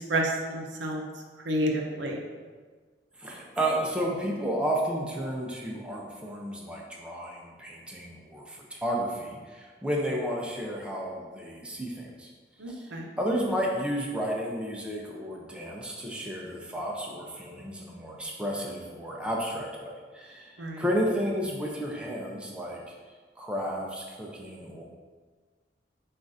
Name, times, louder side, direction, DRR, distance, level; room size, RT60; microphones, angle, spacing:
voice 1, 0.1-1.0 1.5-2.2 12.6-13.1 20.6-20.8, right 1 dB, 85° right, 1 dB, 0.7 m, -29 dB
voice 2, 3.2-12.3 12.7-12.9 13.2-22.8 23.4-24.8, equal, 5° right, -2 dB, 0.5 m, -32 dB
7.3 x 2.5 x 2.6 m, 1.5 s
head